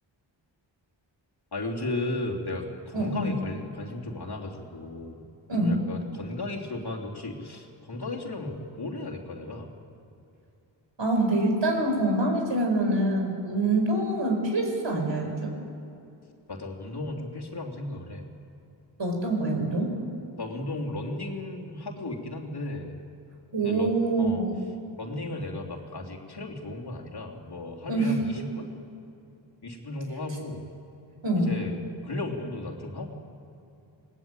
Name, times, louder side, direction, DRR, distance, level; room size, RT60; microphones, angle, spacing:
voice 1, 1.5-5.2 5.6-9.7 16.5-18.3 20.4-22.9 23.6-24.4 25.0-28.7 29.6-30.7 31.5-33.1, left 2 dB, 50° left, -1 dB, 3.3 m, -35 dB
voice 2, 2.9-3.3 5.5-5.8 11.0-15.5 19.0-19.9 23.5-24.6 27.9-28.1 31.2-31.5, right 2 dB, 65° right, 2 dB, 5.0 m, -25 dB
21.0 x 19.0 x 9.0 m, 2.6 s
cardioid pair, 55°, 47 cm